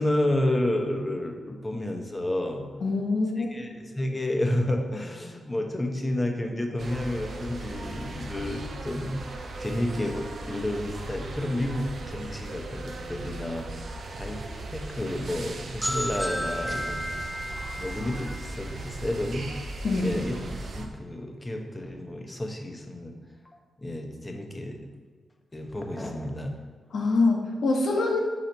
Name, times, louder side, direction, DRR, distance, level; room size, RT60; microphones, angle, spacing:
voice 1, 0.0-2.6 3.4-13.8 14.2-14.4 14.7-17.1 17.8-19.5 20.0-20.4 20.7-23.1 23.8-24.8 25.5-26.6, left 1 dB, 20° left, 3 dB, 0.8 m, -30 dB
voice 2, 2.8-3.5 19.8-20.2 26.9-28.2, left 3 dB, 70° left, 1 dB, 1.0 m, -24 dB
sound 1, 6.8-20.9, right 2 dB, 60° right, 0.6 m, -38 dB
sound 2, 15.8-19.5, equal, ahead, 0.4 m, -33 dB
4.4 x 4.0 x 5.4 m, 1.5 s
cardioid pair, 85°, 0 cm